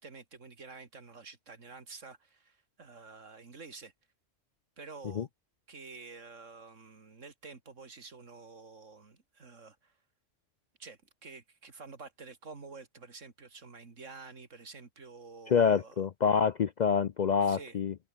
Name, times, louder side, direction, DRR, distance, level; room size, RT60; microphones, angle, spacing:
voice 1, 0.0-3.9 4.8-5.3 5.7-9.9 10.8-15.9 17.4-17.8, right 4 dB, 80° right, 2.8 m, -49 dB
voice 2, 15.5-17.9, left 6 dB, 55° left, 0.5 m, -26 dB
omnidirectional pair, 1.3 m